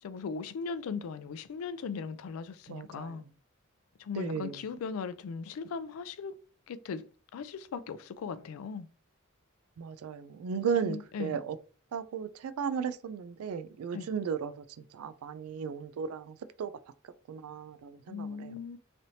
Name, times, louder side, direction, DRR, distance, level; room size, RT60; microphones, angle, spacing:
voice 1, 0.0-3.2 4.0-6.3 6.7-7.0 7.3-8.9 10.8-11.4 13.9-14.1 18.1-18.8, left 5 dB, 75° left, 0.3 m, -38 dB
voice 2, 2.7-3.2 4.2-4.5 9.8-11.6 11.9-16.7 17.3-18.5, right 6 dB, 85° right, 0.3 m, -35 dB
3.2 x 2.7 x 2.7 m
head